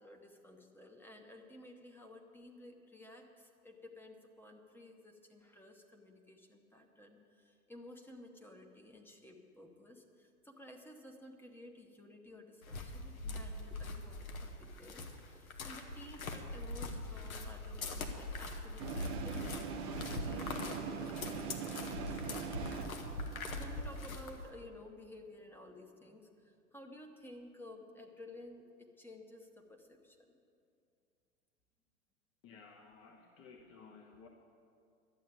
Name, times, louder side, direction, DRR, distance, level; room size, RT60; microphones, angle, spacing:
voice 1, 0.0-19.5 19.9-22.7 23.0-30.2, left 1 dB, 5° left, 2 dB, 1.0 m, -54 dB
sound 1, 12.6-24.5, left 2 dB, 65° left, 1.5 m, -42 dB
sound 2, 18.8-24.1, right 6 dB, 15° right, 0.4 m, -42 dB
voice 2, 32.4-34.3, left 5 dB, 30° left, 1 dB, 1.0 m, -56 dB
12.0 x 8.4 x 8.9 m, 2.4 s
figure-of-eight pair, 100°, 45 cm